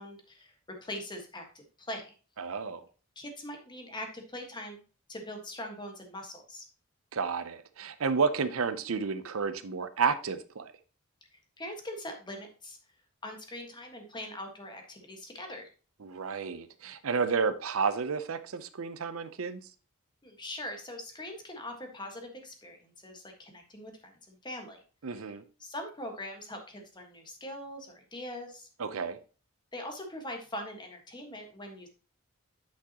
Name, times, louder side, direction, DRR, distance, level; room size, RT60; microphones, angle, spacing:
voice 1, 0.0-2.1 3.1-4.8 5.1-6.6 11.3-12.8 13.2-15.7 20.2-24.8 25.1-25.2 25.6-28.7 29.7-31.9, left 1 dB, 20° left, 1.5 m, -42 dB
voice 2, 2.4-2.8 7.1-10.7 16.0-19.6 25.0-25.4 28.8-29.2, right 5 dB, 70° right, 0.6 m, -31 dB
8.6 x 6.1 x 2.9 m
head